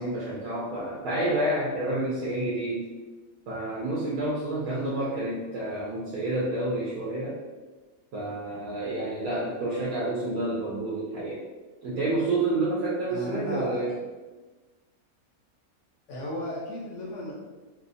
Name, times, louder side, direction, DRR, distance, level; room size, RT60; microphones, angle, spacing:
voice 1, 0.0-2.9 3.5-7.4 8.1-11.4 11.8-13.9, right 2 dB, 75° right, -6 dB, 1.0 m, -29 dB
voice 2, 4.7-5.0 13.1-13.9 16.1-17.3, left 1 dB, 65° left, -4 dB, 0.8 m, -35 dB
2.8 x 2.2 x 2.5 m, 1.3 s
omnidirectional pair, 1.5 m